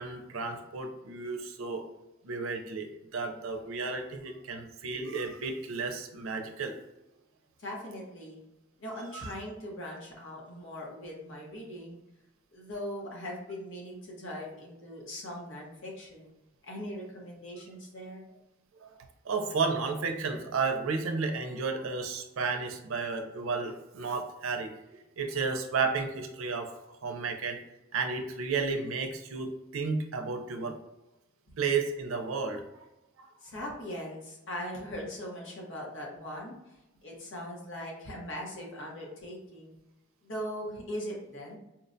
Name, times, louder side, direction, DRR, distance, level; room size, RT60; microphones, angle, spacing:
voice 1, 0.0-1.9 2.2-6.8 9.1-9.3 18.8-18.9 19.3-26.7 27.0-27.6 27.9-30.8 31.6-32.8 33.2-33.3, right 4 dB, 90° right, 5 dB, 0.5 m, -33 dB
voice 2, 7.6-8.4 8.8-12.0 12.5-16.3 16.6-18.2 33.4-36.6 37.0-39.7 40.2-41.6, equal, 65° left, -2 dB, 1.0 m, -40 dB
4.2 x 2.1 x 2.6 m, 0.94 s
head